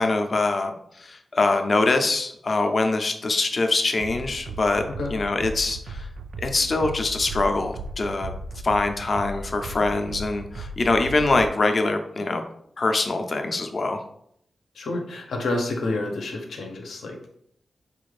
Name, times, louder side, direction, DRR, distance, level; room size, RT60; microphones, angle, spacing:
voice 1, 0.0-4.8 5.1-6.1 6.4-8.3 8.6-12.4 12.8-14.0, left 3 dB, 40° left, 6 dB, 0.5 m, -24 dB
sound 1, 4.0-11.5, right 2 dB, 70° right, 0.3 m, -36 dB
voice 2, 14.7-17.2, left 2 dB, 85° left, 2 dB, 0.8 m, -29 dB
4.4 x 2.4 x 3.2 m, 0.70 s
wide cardioid pair, 135°, 0 cm